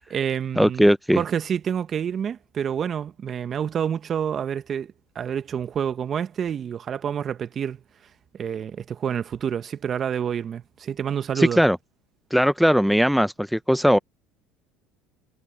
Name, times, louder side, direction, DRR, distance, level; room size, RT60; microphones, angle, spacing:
voice 1, 0.0-0.9 1.2-7.8 8.3-11.6, right 8 dB, 40° right, 1.4 m, -28 dB
voice 2, 0.6-1.2 11.4-11.8 12.3-14.0, equal, ahead, 0.7 m, -19 dB
hypercardioid pair, 80°, 0 cm